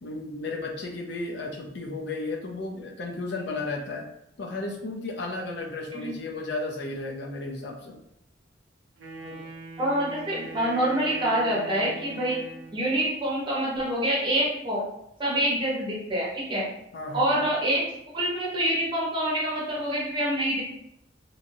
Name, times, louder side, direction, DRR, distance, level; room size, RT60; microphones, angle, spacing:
voice 1, 0.0-4.1 4.4-8.0 9.2-9.4 16.9-17.5, left 2 dB, 60° left, 1 dB, 0.5 m, -34 dB
Wind instrument woodwind instrument, 9.0-13.0, right 2 dB, 70° right, 0.6 m, -41 dB
voice 2, 9.8-12.4 12.7-14.8 15.2-16.6 17.1-17.8 18.1-20.6, right 1 dB, 25° right, -5 dB, 1.0 m, -26 dB
3.0 x 2.7 x 2.6 m, 0.79 s
head